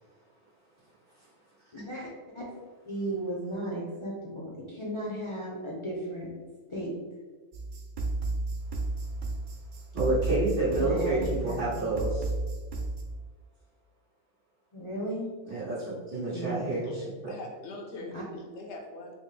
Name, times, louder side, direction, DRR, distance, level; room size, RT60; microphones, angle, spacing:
voice 1, 1.7-2.1 2.3-2.4 2.9-6.3 6.7-6.9 10.7-11.6 14.7-15.2 16.3-16.6 18.1-18.2, right 1 dB, 40° left, -4 dB, 0.5 m, -35 dB
sound 1, 7.5-13.0, right 2 dB, 60° right, 0.5 m, -33 dB
voice 2, 9.9-12.3 15.4-17.1, right 2 dB, 80° right, -10 dB, 2.0 m, -29 dB
voice 3, 17.2-19.1, left 2 dB, 80° left, 1 dB, 1.0 m, -42 dB
4.3 x 2.0 x 3.2 m, 1.4 s
omnidirectional pair, 1.2 m